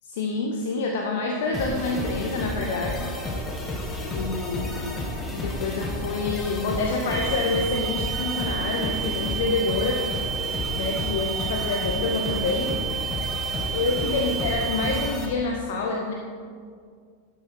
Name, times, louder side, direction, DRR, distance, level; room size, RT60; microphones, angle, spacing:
voice 1, 0.1-3.1 4.1-5.1 5.3-10.1 10.7-12.7 13.7-16.1, left 3 dB, 55° left, 2 dB, 0.9 m, -27 dB
sound 1, 1.5-15.3, left 1 dB, 15° left, 1.5 m, -31 dB
sound 2, 7.1-15.1, right 9 dB, 75° right, 2.6 m, -31 dB
11.0 x 7.3 x 4.4 m, 2.1 s
figure-of-eight pair, 90°, 0 cm